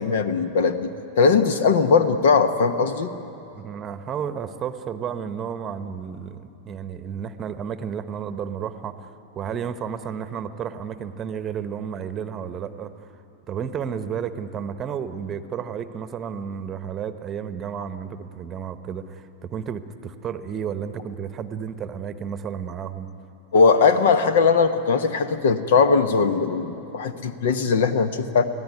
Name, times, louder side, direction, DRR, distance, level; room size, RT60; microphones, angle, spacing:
voice 1, 0.0-3.1 23.5-28.4, left 5 dB, 60° left, 11 dB, 1.1 m, -19 dB
voice 2, 3.6-13.1 13.5-23.1, right 7 dB, 25° right, 11 dB, 1.0 m, -32 dB
24.5 x 16.5 x 9.6 m, 2.8 s
figure-of-eight pair, 90°, 0 cm